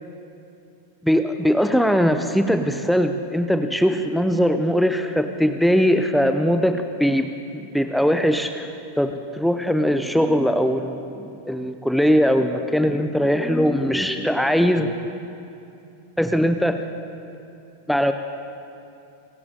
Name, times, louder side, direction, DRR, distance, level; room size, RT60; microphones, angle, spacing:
voice 1, 1.0-15.1 16.2-16.8 17.9-18.1, equal, ahead, 8 dB, 0.6 m, -21 dB
26.5 x 11.0 x 3.8 m, 2.7 s
figure-of-eight pair, 90°, 0 cm